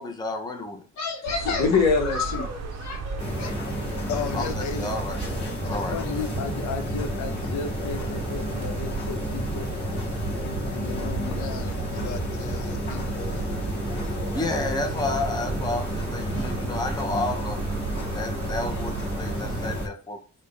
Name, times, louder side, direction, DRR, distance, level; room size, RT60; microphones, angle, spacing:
voice 1, 0.0-0.9 4.3-4.5 4.7-5.2 5.6-6.0 13.9-20.2, left 2 dB, 15° left, 0.5 m, -31 dB
voice 2, 1.0-3.5, left 5 dB, 65° left, 1.0 m, -25 dB
sound 1, 1.2-19.9, right 5 dB, 65° right, 0.5 m, -34 dB
sound 2, 3.2-19.9, left 1 dB, 40° left, 1.6 m, -32 dB
voice 3, 4.1-4.9 5.6-9.7 10.4-14.7, left 6 dB, 85° left, 0.7 m, -35 dB
4.3 x 2.1 x 3.2 m
wide cardioid pair, 175°, 29 cm